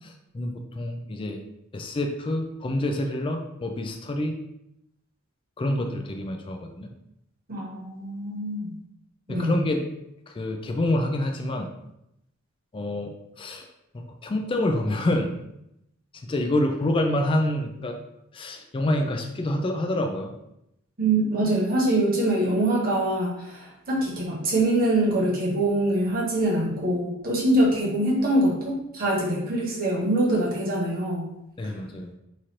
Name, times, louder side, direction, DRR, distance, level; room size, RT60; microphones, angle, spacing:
voice 1, 0.0-1.4 1.7-4.4 5.6-6.9 9.3-9.8 10.3-11.7 12.7-13.7 13.9-15.3 16.1-18.0 18.3-20.3 31.6-32.1, left 1 dB, 25° left, 3 dB, 0.3 m, -27 dB
voice 2, 7.5-8.7 9.3-9.6 21.0-31.3 31.6-31.7, right 1 dB, 45° right, -3 dB, 1.1 m, -24 dB
3.1 x 2.5 x 4.3 m, 0.82 s
head